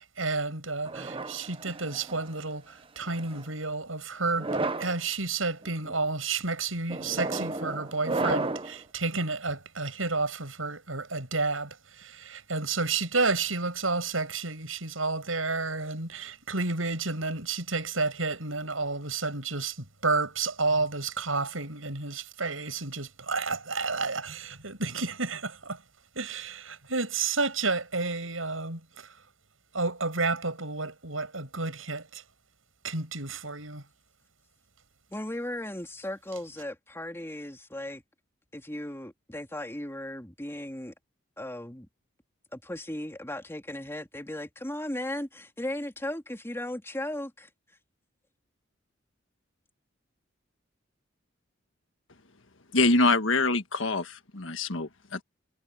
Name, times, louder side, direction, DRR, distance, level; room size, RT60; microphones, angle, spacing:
voice 1, 0.0-4.5 4.8-25.8 26.2-29.1 29.7-32.2 32.8-33.8, right 3 dB, 85° right, 7.4 m, -31 dB
sound 1, 0.9-2.3 3.1-3.4 4.3-4.9 5.6-5.9 6.9-8.8, right 2 dB, 25° right, 1.0 m, -32 dB
voice 2, 35.1-38.0 38.5-40.9 41.4-41.9 42.5-47.5, left 1 dB, 15° left, 3.2 m, -36 dB
voice 3, 52.7-55.2, left 3 dB, 70° left, 1.6 m, -25 dB
head